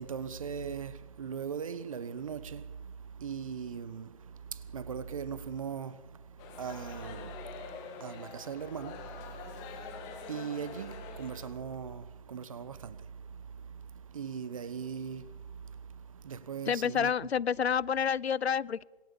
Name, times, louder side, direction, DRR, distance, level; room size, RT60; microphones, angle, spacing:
voice 1, 0.0-17.3, right 7 dB, 35° right, 1.1 m, -40 dB
sound 1, 6.4-11.5, left 6 dB, 10° left, 1.7 m, -45 dB
voice 2, 16.7-18.8, left 7 dB, 85° left, 0.8 m, -29 dB
26.0 x 23.0 x 7.1 m
hypercardioid pair, 170°, 31 cm